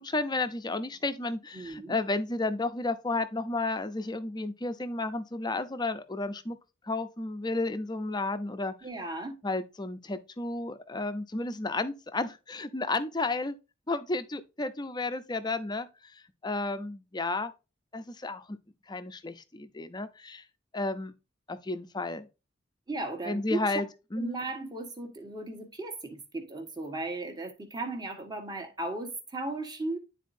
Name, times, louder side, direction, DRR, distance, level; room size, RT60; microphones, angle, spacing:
voice 1, 0.0-6.6 6.8-8.7 9.4-13.6 13.9-17.5 17.9-18.6 18.9-20.4 20.7-21.1 21.5-22.3 23.2-24.4, left 2 dB, 20° left, 0.6 m, -32 dB
voice 2, 1.5-2.0 8.8-9.4 22.9-23.7 24.2-30.0, right 2 dB, 20° right, 1.4 m, -36 dB
11.5 x 4.1 x 2.6 m
head